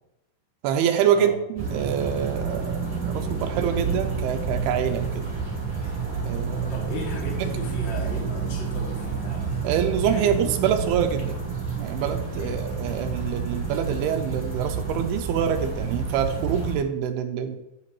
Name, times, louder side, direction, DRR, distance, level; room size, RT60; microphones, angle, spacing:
voice 1, 0.6-5.3 6.3-6.7 9.6-11.4 11.8-17.6, right 8 dB, 80° right, 8 dB, 2.7 m, -26 dB
sound 1, 1.6-16.7, right 5 dB, 10° right, 2.7 m, -29 dB
voice 2, 6.7-9.7 10.0-10.3 12.3-12.6, left 1 dB, 25° left, -2 dB, 1.4 m, -36 dB
10.0 x 8.7 x 3.1 m, 0.93 s
omnidirectional pair, 4.7 m